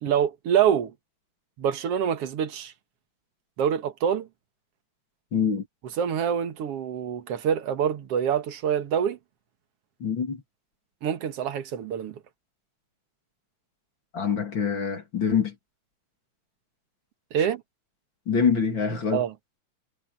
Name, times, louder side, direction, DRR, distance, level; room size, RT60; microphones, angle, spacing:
voice 1, 0.0-0.9 1.6-2.7 3.6-4.3 6.0-9.2 11.0-12.2 17.3-17.6 19.1-19.3, right 8 dB, 60° right, 2.2 m, -26 dB
voice 2, 5.3-5.6 10.0-10.4 14.1-15.5 18.3-19.2, left 6 dB, 40° left, 3.3 m, -25 dB
omnidirectional pair, 3.3 m